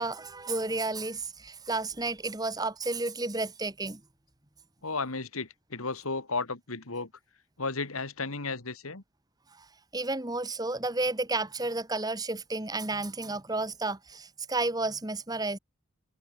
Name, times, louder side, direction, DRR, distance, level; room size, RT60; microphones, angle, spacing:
voice 1, 0.0-4.0 9.6-9.7 9.9-15.6, right 2 dB, 15° right, 1.4 m, -32 dB
voice 2, 4.8-7.1 7.6-9.0, left 3 dB, 80° left, 2.4 m, -34 dB
head